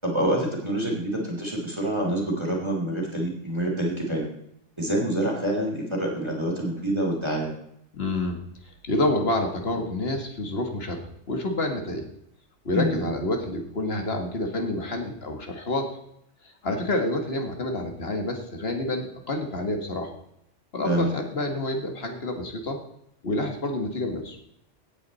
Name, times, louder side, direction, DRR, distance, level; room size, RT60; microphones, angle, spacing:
voice 1, 0.0-4.3 4.8-7.5 12.7-13.1 20.8-21.1, right 1 dB, 20° right, -2 dB, 3.0 m, -26 dB
voice 2, 7.9-12.0 12.7-16.0 16.6-20.1 20.7-22.8 23.2-24.4, left 2 dB, 55° left, 4 dB, 1.9 m, -28 dB
16.0 x 8.7 x 4.1 m, 0.74 s
omnidirectional pair, 1.3 m